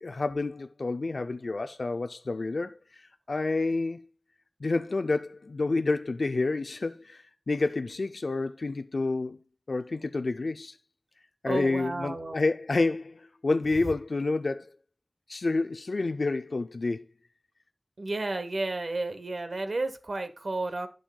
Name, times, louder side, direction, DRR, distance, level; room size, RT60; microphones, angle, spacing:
voice 1, 0.0-4.0 4.6-9.4 9.7-10.8 11.4-14.7 15.3-17.0, left 3 dB, 80° left, 0.3 m, -29 dB
voice 2, 11.5-12.4 18.0-20.9, right 2 dB, 80° right, 0.9 m, -32 dB
11.5 x 6.3 x 2.2 m
wide cardioid pair, 45°, 0 cm